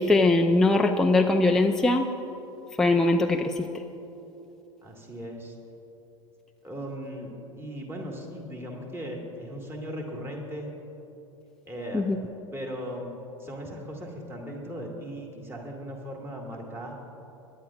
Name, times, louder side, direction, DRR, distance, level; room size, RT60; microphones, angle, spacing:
voice 1, 0.0-2.1 2.8-3.7 11.9-12.2, left 2 dB, 5° left, 3 dB, 0.5 m, -21 dB
voice 2, 4.8-5.5 6.6-10.7 11.7-12.0 12.5-16.9, equal, 15° right, 0 dB, 2.1 m, -38 dB
24.0 x 11.0 x 2.4 m, 3.0 s
figure-of-eight pair, 85°, 17 cm